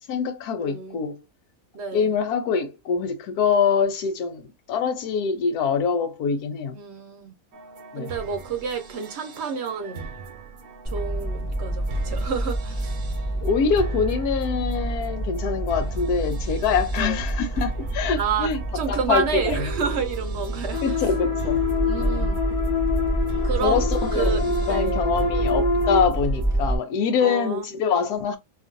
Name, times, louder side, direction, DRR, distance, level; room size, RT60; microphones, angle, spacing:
voice 1, 0.1-1.2 1.9-6.8 7.9-8.1 13.4-18.6 18.9-19.8 20.8-21.6 21.9-22.4 23.6-28.4, left 6 dB, 90° left, 1.2 m, -24 dB
voice 2, 0.6-1.0 1.7-2.1 6.7-7.3 8.0-10.1 10.9-13.0 17.0-17.2 18.2-18.5 18.7-21.0 21.9-22.4 23.4-23.8 24.1-25.1 27.2-27.6, right 6 dB, 60° right, 0.8 m, -29 dB
sound 1, 7.5-26.7, right 4 dB, 85° right, 1.2 m, -40 dB
sound 2, 10.8-26.8, right 1 dB, 5° right, 0.5 m, -28 dB
sound 3, 20.7-26.1, left 4 dB, 50° left, 0.7 m, -26 dB
2.9 x 2.5 x 2.5 m
omnidirectional pair, 1.6 m